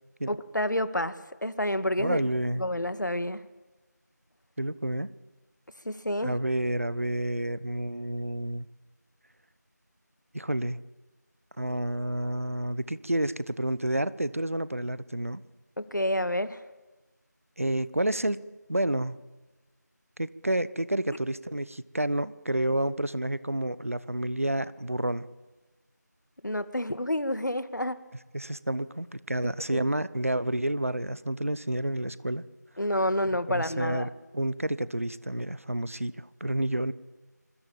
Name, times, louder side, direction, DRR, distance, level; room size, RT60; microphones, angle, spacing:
voice 1, 0.3-2.2 2.6-3.4 5.9-6.4 15.8-16.6 26.4-28.0 29.4-29.9 32.8-34.1, left 1 dB, 80° left, 12 dB, 2.0 m, -29 dB
voice 2, 2.0-2.6 4.6-5.1 6.2-8.7 10.3-10.8 11.6-15.4 17.6-18.4 18.7-19.2 20.2-25.3 28.3-32.4 33.5-36.9, right 1 dB, 50° right, 17 dB, 1.0 m, -29 dB
26.5 x 21.0 x 8.9 m, 1.2 s
figure-of-eight pair, 175°, 10 cm